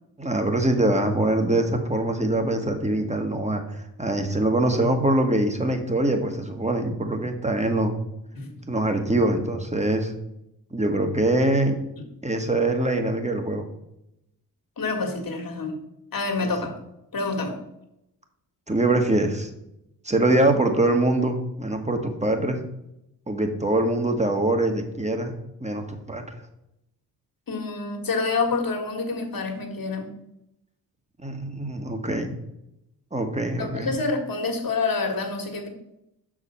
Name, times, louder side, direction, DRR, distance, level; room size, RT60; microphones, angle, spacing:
voice 1, 0.2-7.9 8.7-10.1 10.7-11.8 12.2-13.7 18.7-19.5 20.0-22.6 23.3-25.3 25.6-26.2 31.2-32.3 33.1-34.0, right 1 dB, 15° right, 5 dB, 1.5 m, -23 dB
voice 2, 14.8-15.8 16.1-16.7 17.1-17.6 27.5-30.1 33.6-35.7, left 3 dB, 55° left, 3 dB, 1.9 m, -27 dB
6.0 x 4.9 x 5.6 m, 0.83 s
supercardioid pair, 45°, 41 cm